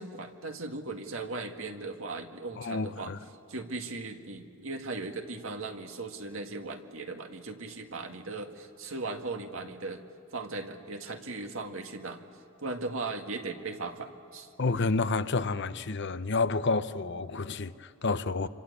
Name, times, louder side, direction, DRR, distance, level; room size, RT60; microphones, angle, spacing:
voice 1, 0.0-3.1 3.5-10.0 10.3-12.2 12.6-14.5 18.1-18.2, right 3 dB, 80° right, 1.9 m, -38 dB
voice 2, 2.6-3.2 14.6-18.5, left 3 dB, 60° left, 0.8 m, -29 dB
27.5 x 25.0 x 8.4 m
head